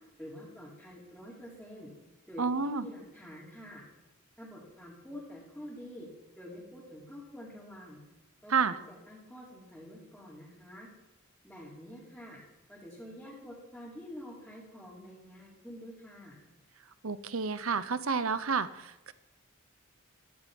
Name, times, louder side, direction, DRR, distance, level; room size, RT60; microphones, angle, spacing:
voice 1, 0.2-1.9 2.3-3.8 4.4-6.1 6.4-8.0 8.4-10.9 11.4-12.4 12.7-16.4, left 1 dB, 5° left, -6 dB, 4.4 m, -47 dB
voice 2, 2.4-2.8 8.5-8.7 17.0-19.1, right 5 dB, 70° right, 14 dB, 1.0 m, -30 dB
17.5 x 15.0 x 5.4 m, 0.96 s
head